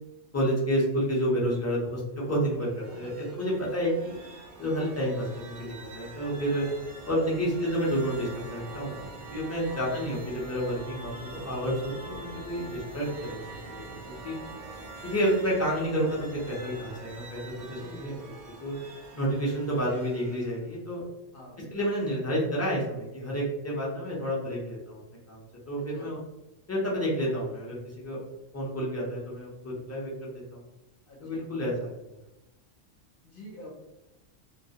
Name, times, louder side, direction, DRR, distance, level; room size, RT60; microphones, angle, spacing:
voice 1, 0.3-4.2 4.6-6.7 7.1-13.4 13.7-14.4 15.0-17.5 18.0-18.2 18.6-18.8 19.1-21.0 21.7-25.0 25.3-26.2 26.7-28.2 28.5-30.6 31.2-31.9, equal, 25° left, -5 dB, 0.4 m, -30 dB
sound 1, 2.5-20.7, right 2 dB, 65° right, 0.4 m, -44 dB
voice 2, 2.9-3.3 9.7-9.9 17.6-18.4 21.3-21.6 25.7-26.1 31.1-31.5 33.2-33.7, equal, 55° left, -2 dB, 0.7 m, -48 dB
2.2 x 2.0 x 2.7 m, 0.96 s
omnidirectional pair, 1.3 m